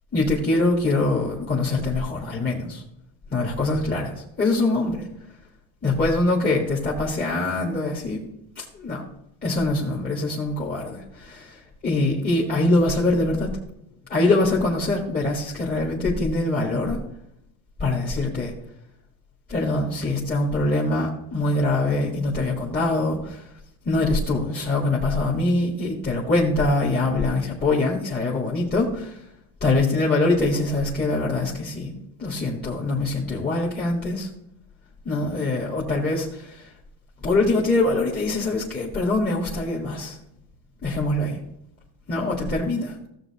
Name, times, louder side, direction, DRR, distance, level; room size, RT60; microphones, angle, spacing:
voice 1, 0.1-2.8 3.3-5.1 5.8-8.2 8.6-9.0 9.4-13.5 14.1-17.0 17.8-18.5 19.5-23.5 23.9-29.2 29.6-34.3 35.1-36.7 37.2-40.2 40.8-41.4 42.1-42.9, left 2 dB, 20° left, -4 dB, 1.7 m, -23 dB
15.0 x 7.2 x 2.9 m, 0.81 s
cardioid pair, 115°, 45 cm